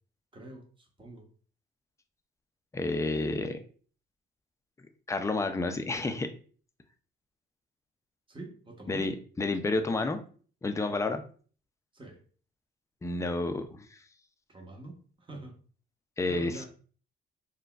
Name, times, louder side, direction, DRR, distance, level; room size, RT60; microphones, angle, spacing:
voice 1, 0.3-1.3 8.3-9.2 11.9-12.2 14.5-15.5 16.3-16.7, right 2 dB, 25° right, 1 dB, 0.9 m, -45 dB
voice 2, 2.7-3.6 5.1-6.3 8.9-9.1 9.4-10.2 10.6-11.2 13.0-13.8 16.2-16.5, left 3 dB, 15° left, 7 dB, 0.4 m, -30 dB
3.8 x 2.2 x 2.4 m, 0.42 s
cardioid pair, 90°, 20 cm